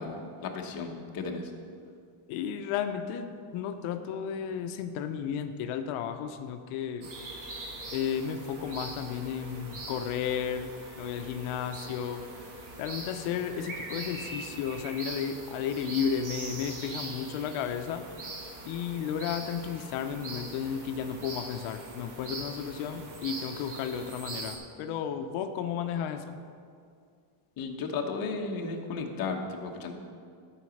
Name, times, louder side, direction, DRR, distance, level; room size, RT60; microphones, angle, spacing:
voice 1, 0.0-1.5 27.6-29.9, left 4 dB, 45° left, 2 dB, 1.3 m, -34 dB
voice 2, 2.3-7.1 7.9-12.3 12.8-18.1 18.6-26.4, left 8 dB, 75° left, 7 dB, 0.8 m, -33 dB
sound 1, 7.0-24.6, right 2 dB, 40° right, 1.8 m, -42 dB
13.0 x 5.1 x 6.4 m, 2.2 s
cardioid pair, 155°, 49 cm